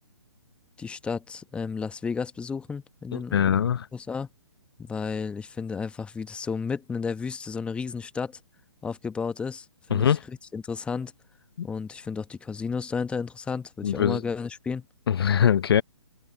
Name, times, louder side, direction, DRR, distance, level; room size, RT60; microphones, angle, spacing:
voice 1, 0.8-3.5 3.9-4.3 4.8-8.4 8.8-11.1 11.6-14.8, left 5 dB, 5° left, 1.2 m, -32 dB
voice 2, 3.1-3.9 9.9-10.2 11.6-11.7 13.8-14.2 15.1-15.8, left 8 dB, 50° left, 0.7 m, -22 dB
figure-of-eight pair, 130°, 16 cm